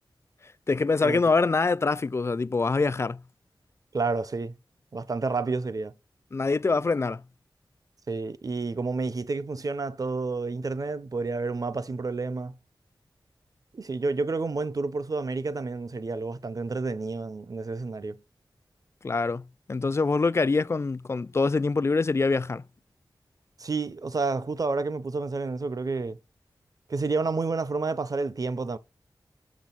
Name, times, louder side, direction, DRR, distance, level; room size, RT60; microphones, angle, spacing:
voice 1, 0.7-3.2 6.3-7.2 19.0-22.6, left 4 dB, 30° left, 0.3 m, -25 dB
voice 2, 3.9-4.5 4.9-5.9 8.1-12.5 13.7-18.2 23.6-26.2 26.9-28.8, right 3 dB, 45° right, 0.6 m, -30 dB
6.7 x 6.1 x 3.9 m
wide cardioid pair, 100°, 8 cm